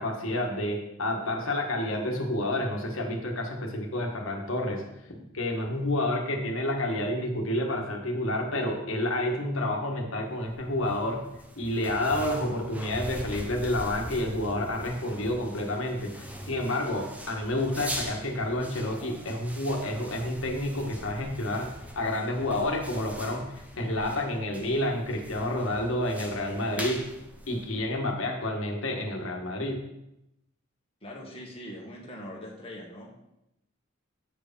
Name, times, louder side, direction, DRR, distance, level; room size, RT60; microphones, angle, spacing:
voice 1, 0.0-4.8 5.3-11.2 11.5-21.7 21.9-27.0 27.5-29.8, left 1 dB, 70° left, 1 dB, 1.5 m, -29 dB
sound 1, 10.3-28.2, equal, 5° right, 0.8 m, -42 dB
voice 2, 31.0-33.2, equal, 30° left, -2 dB, 1.8 m, -42 dB
8.1 x 4.8 x 5.3 m, 0.86 s
head